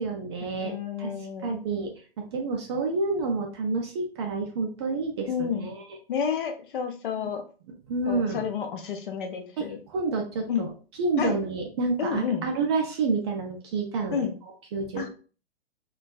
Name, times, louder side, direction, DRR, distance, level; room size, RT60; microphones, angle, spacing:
voice 1, 0.0-0.7 1.0-1.1 1.4-1.9 2.3-5.8 7.2-7.3 7.9-8.5 9.6-9.7 9.9-10.7 11.0-14.2 14.7-15.1, right 3 dB, 25° right, 1 dB, 0.3 m, -28 dB
voice 2, 0.6-1.6 5.3-5.7 6.1-7.4 8.1-9.8 10.5-10.7 11.2-11.4 12.0-12.4 14.1-14.3 15.0-15.1, left 7 dB, 55° left, 5 dB, 0.6 m, -30 dB
2.4 x 2.3 x 2.2 m, 0.37 s
figure-of-eight pair, 110°, 31 cm